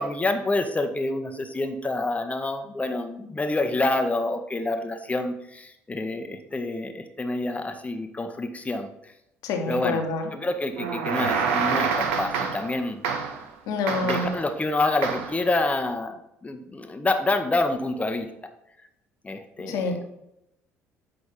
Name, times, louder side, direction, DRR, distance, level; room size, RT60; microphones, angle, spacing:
voice 1, 0.0-8.9 9.6-10.0 10.3-13.0 14.0-18.3 19.2-20.0, left 2 dB, 20° left, 7 dB, 0.7 m, -27 dB
voice 2, 9.4-10.3 13.7-14.3 19.7-19.9, left 3 dB, 60° left, 4 dB, 1.1 m, -27 dB
sound 1, 10.8-12.8 13.0-13.5 13.9-14.5 15.0-15.4, right 6 dB, 70° right, 0.7 m, -27 dB
8.0 x 5.1 x 3.7 m, 0.84 s
figure-of-eight pair, 55°, 7 cm